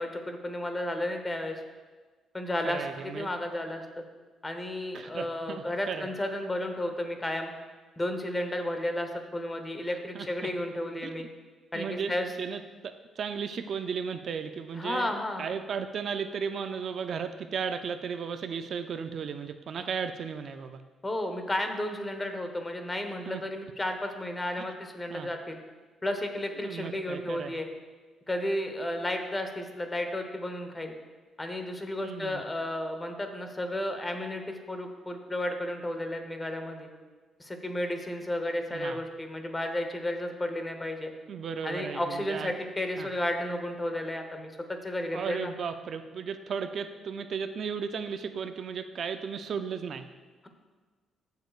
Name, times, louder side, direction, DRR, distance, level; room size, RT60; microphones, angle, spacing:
voice 1, 0.0-1.6 2.3-4.0 4.4-7.5 8.0-11.3 11.7-12.3 14.7-15.5 19.8-19.9 21.0-25.6 26.0-27.7 28.3-30.9 31.4-36.9 37.4-41.1 41.6-45.5, left 1 dB, 15° left, 5 dB, 1.0 m, -33 dB
voice 2, 2.6-3.3 4.9-6.1 9.9-10.5 11.0-11.1 11.7-12.1 12.4-12.6 13.2-20.8 23.3-23.4 25.1-25.3 26.6-27.5 32.0-32.4 38.7-39.0 41.3-42.5 43.0-43.1 45.1-50.1, right 6 dB, 55° right, 8 dB, 0.4 m, -35 dB
14.5 x 6.5 x 2.4 m, 1.4 s
cardioid pair, 120°, 0 cm